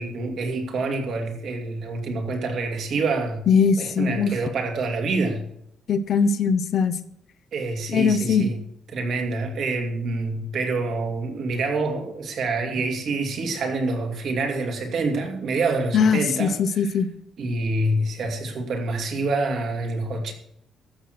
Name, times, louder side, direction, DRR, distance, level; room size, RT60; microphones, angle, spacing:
voice 1, 0.0-3.4 3.8-5.4 7.5-8.6 8.9-16.6 17.4-20.3, right 3 dB, 65° right, 2.5 m, -26 dB
voice 2, 3.5-4.3 5.9-7.0 7.9-8.4 15.9-17.1, left 6 dB, 60° left, 0.8 m, -20 dB
14.5 x 6.4 x 6.0 m
cardioid pair, 90°, 0 cm